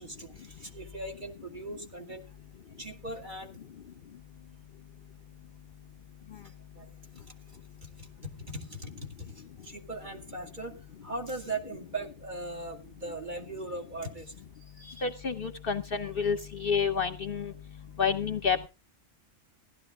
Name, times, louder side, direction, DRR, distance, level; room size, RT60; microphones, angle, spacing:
voice 1, 0.0-2.3 2.8-3.6 6.7-7.2 7.8-14.3 14.8-15.1, right 2 dB, 40° right, 2 dB, 2.5 m, -40 dB
voice 2, 15.0-17.5 18.0-18.7, left 6 dB, 50° left, 10 dB, 0.9 m, -29 dB
16.0 x 11.5 x 3.7 m, 0.30 s
omnidirectional pair, 1.3 m